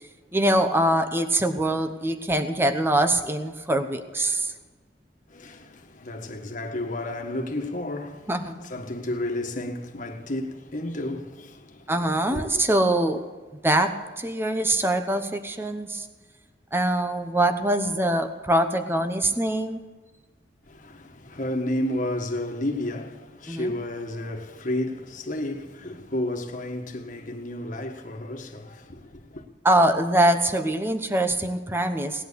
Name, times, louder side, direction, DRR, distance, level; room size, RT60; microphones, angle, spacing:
voice 1, 0.3-4.5 8.3-8.6 11.9-13.3 13.6-16.1 16.7-19.8 23.5-23.7 29.6-32.2, right 1 dB, 15° right, 0.9 m, -23 dB
voice 2, 5.3-11.9 12.3-12.6 20.7-29.5, left 1 dB, 45° left, 1.6 m, -32 dB
18.5 x 11.0 x 7.0 m
head